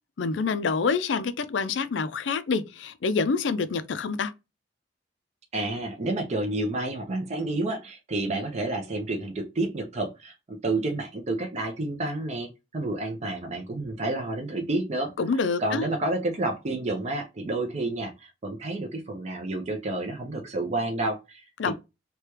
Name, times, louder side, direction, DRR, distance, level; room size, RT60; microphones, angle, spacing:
voice 1, 0.2-4.3 15.2-15.9 21.6-21.7, left 4 dB, 75° left, 0.4 m, -27 dB
voice 2, 5.5-15.1 15.6-21.7, right 2 dB, 35° right, 0.6 m, -30 dB
3.2 x 2.2 x 2.9 m
head